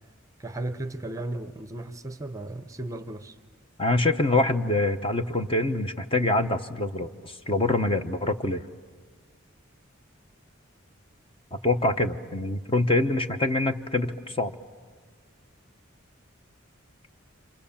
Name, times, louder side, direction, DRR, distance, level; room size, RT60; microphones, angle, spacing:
voice 1, 0.4-3.4, right 2 dB, 15° right, 0.7 m, -35 dB
voice 2, 3.8-8.6 11.5-14.5, left 2 dB, 25° left, 0.9 m, -25 dB
30.0 x 26.0 x 7.2 m
head